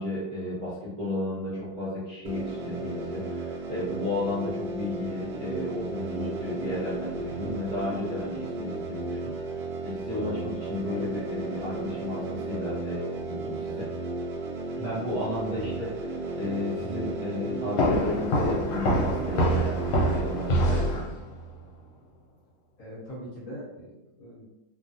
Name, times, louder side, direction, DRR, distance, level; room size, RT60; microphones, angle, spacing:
voice 1, 0.0-9.6 9.8-13.9 14.7-21.1, left 2 dB, 40° right, -11 dB, 0.7 m, -33 dB
sound 1, 2.2-20.9, right 3 dB, 70° right, 1.0 m, -34 dB
sound 2, 17.8-21.5, equal, 80° left, 1.4 m, -25 dB
voice 2, 22.8-24.5, equal, 60° left, -8 dB, 1.0 m, -41 dB
3.2 x 2.2 x 2.5 m, 0.98 s
omnidirectional pair, 2.2 m